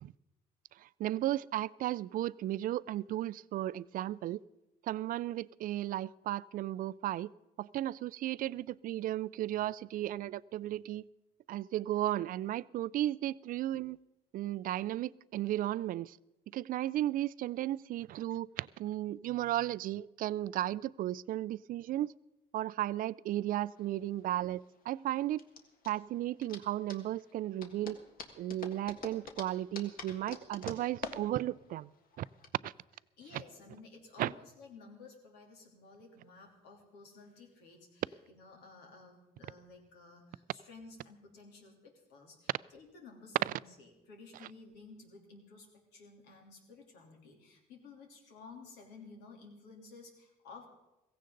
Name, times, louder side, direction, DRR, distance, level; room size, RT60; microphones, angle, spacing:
voice 1, 0.8-4.4 4.8-7.3 7.6-11.1 11.5-14.0 14.3-16.2 16.5-22.1 22.5-25.4 25.9-28.0 28.4-31.9 32.2-32.3 32.6-32.7 34.2-34.3 43.5-43.6, right 13 dB, 55° right, 0.4 m, -35 dB
sound 1, 23.6-32.5, left 5 dB, 55° left, 1.7 m, -48 dB
voice 2, 33.2-50.7, left 4 dB, 90° left, 3.2 m, -54 dB
16.0 x 16.0 x 3.9 m
cardioid pair, 110°, 17 cm